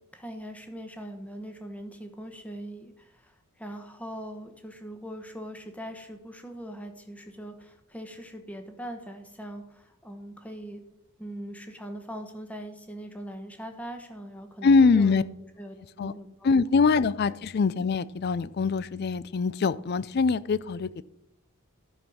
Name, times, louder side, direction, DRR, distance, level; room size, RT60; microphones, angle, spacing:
voice 1, 0.0-10.8 11.2-15.2 15.6-16.5 17.2-17.4, equal, 5° left, 1.1 m, -41 dB
voice 2, 14.6-15.2 16.0-16.1 16.4-20.9, left 4 dB, 50° left, 0.4 m, -23 dB
12.0 x 5.3 x 6.2 m
head